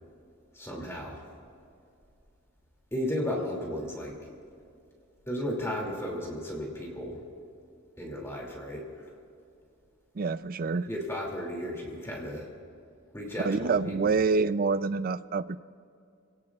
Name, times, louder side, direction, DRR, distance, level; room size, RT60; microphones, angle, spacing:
voice 1, 0.5-1.3 2.9-4.2 5.3-7.2 8.0-9.0 10.9-12.5 13.1-14.2, left 1 dB, 15° left, -2 dB, 2.5 m, -34 dB
voice 2, 10.2-10.9 13.4-15.6, right 4 dB, 45° right, 14 dB, 0.4 m, -27 dB
27.5 x 17.5 x 2.4 m, 2.4 s
head